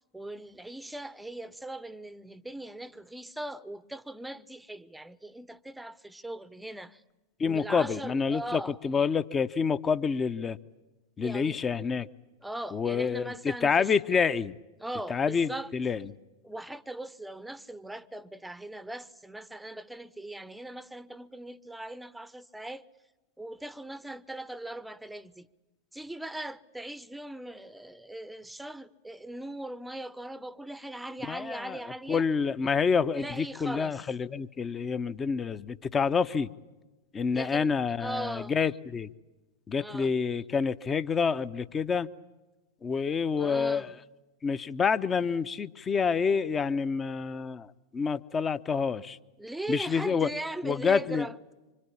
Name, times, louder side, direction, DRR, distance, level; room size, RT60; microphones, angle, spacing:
voice 1, 0.1-7.0 7.5-8.8 11.2-11.6 12.4-13.9 14.8-15.7 16.4-22.8 23.4-25.5 25.9-32.2 33.1-34.0 37.3-37.7 38.0-38.6 39.8-40.1 43.4-43.9 49.4-51.4, right 1 dB, 5° right, 0.9 m, -40 dB
voice 2, 7.4-10.6 11.2-12.1 12.7-14.5 15.1-16.1 31.3-31.8 32.1-36.5 37.1-39.1 39.7-42.1 42.8-43.9 44.4-49.2 49.7-50.3 50.6-51.3, left 5 dB, 20° left, 0.9 m, -28 dB
26.5 x 26.0 x 8.6 m
figure-of-eight pair, 90°, 0 cm